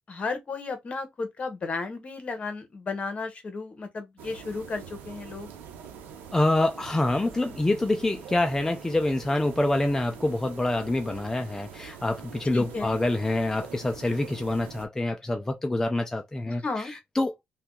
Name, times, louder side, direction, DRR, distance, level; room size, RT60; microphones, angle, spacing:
voice 1, 0.1-5.5 12.5-13.0 16.5-16.9, left 4 dB, 40° left, 1.1 m, -34 dB
sound 1, 4.2-14.9, right 7 dB, 85° right, 0.9 m, -44 dB
voice 2, 6.3-17.4, left 2 dB, 15° left, 0.4 m, -26 dB
2.7 x 2.3 x 3.7 m
cardioid pair, 85°, 3 cm